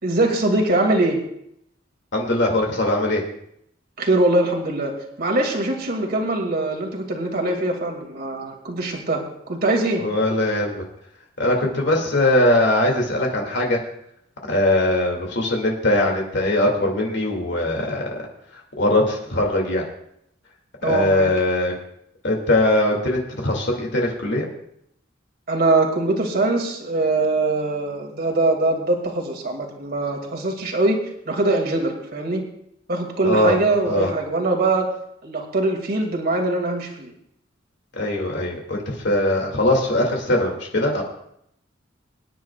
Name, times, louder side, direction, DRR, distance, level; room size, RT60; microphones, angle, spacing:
voice 1, 0.0-1.2 4.0-9.2 9.5-10.0 20.8-21.3 25.5-31.0 31.3-32.4 32.9-34.9 35.2-37.1, right 2 dB, 55° right, 2 dB, 2.4 m, -22 dB
voice 2, 2.1-3.2 10.0-10.9 11.4-13.8 14.5-18.2 18.5-19.9 20.8-21.7 22.2-24.5 33.2-33.6 33.9-34.1 37.9-41.0, left 1 dB, 65° left, 0 dB, 2.4 m, -21 dB
24.5 x 10.5 x 2.4 m, 0.74 s
head